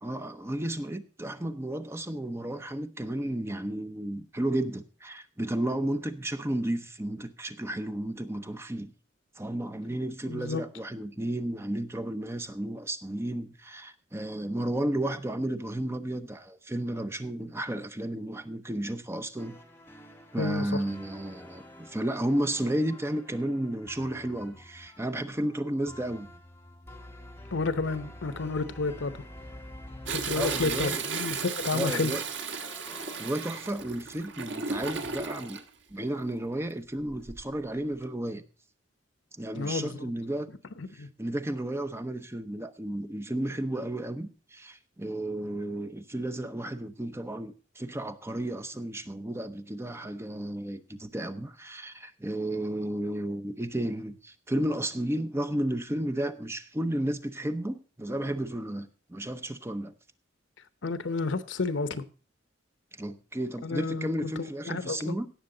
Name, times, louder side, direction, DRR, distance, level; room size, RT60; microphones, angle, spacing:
voice 1, 0.0-8.9 9.4-19.6 20.3-26.3 30.3-31.0 31.7-32.2 33.2-35.6 35.9-38.4 39.4-40.5 40.9-59.9 62.9-65.3, right 1 dB, 15° right, 0.7 m, -33 dB
voice 2, 10.3-10.6 20.4-20.8 27.5-29.1 30.1-32.1 39.5-40.1 40.8-41.1 60.8-62.0 63.6-64.3 64.7-65.2, left 3 dB, 75° left, 0.9 m, -31 dB
sound 1, 19.4-33.3, left 1 dB, 15° left, 1.8 m, -48 dB
Toilet flush, 30.1-35.6 37.1-37.6 38.0-38.1, right 5 dB, 70° right, 1.4 m, -34 dB
17.5 x 6.6 x 3.9 m
head